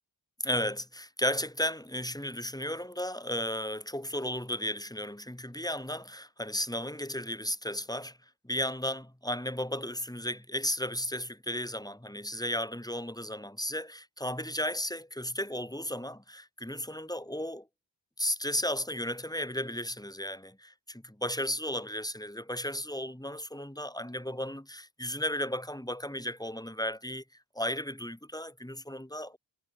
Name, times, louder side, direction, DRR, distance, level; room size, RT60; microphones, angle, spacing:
voice 1, 0.4-8.2 8.4-17.7 18.2-27.2 27.5-29.4, equal, 10° left, 5.9 m, -34 dB
wide cardioid pair, 70°, 45 cm